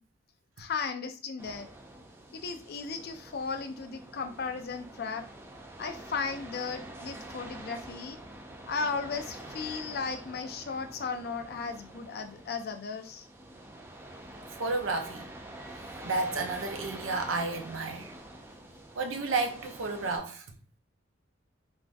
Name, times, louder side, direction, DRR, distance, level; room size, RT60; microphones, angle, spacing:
voice 1, 0.6-1.7 2.3-5.2 5.8-8.2 8.7-13.3, left 5 dB, 55° left, 0.4 m, -35 dB
sound 1, 1.4-20.2, right 1 dB, 15° right, 0.3 m, -46 dB
voice 2, 14.6-15.3 16.0-18.1 19.0-20.4, right 3 dB, 85° right, 0.6 m, -31 dB
3.4 x 2.3 x 2.5 m
head